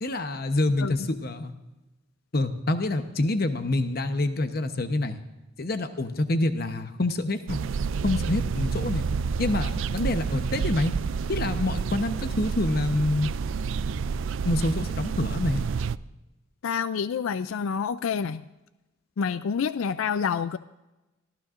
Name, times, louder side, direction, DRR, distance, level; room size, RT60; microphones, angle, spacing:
voice 1, 0.0-1.5 2.3-5.2 5.6-7.7 8.0-9.0 9.4-10.9 11.3-13.3 14.4-15.6, left 2 dB, 50° left, 8 dB, 0.9 m, -27 dB
sound 1, 7.5-16.0, right 5 dB, 75° right, 0.4 m, -29 dB
voice 2, 16.6-18.4 19.2-20.6, left 6 dB, 90° left, 14 dB, 0.4 m, -28 dB
24.0 x 15.0 x 2.5 m, 1.0 s
head